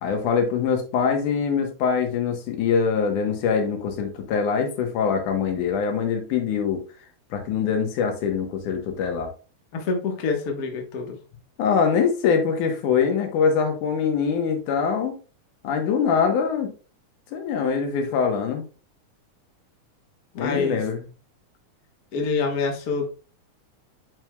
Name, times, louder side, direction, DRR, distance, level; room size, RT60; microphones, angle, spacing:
voice 1, 0.0-6.8 7.3-9.3 11.6-15.2 15.6-16.7 17.3-18.7 20.4-21.0, left 6 dB, 80° left, 5 dB, 2.7 m, -23 dB
voice 2, 9.7-11.2 20.3-20.8 22.1-23.1, left 4 dB, 50° left, 3 dB, 1.1 m, -26 dB
9.3 x 5.3 x 2.3 m, 0.35 s
omnidirectional pair, 3.6 m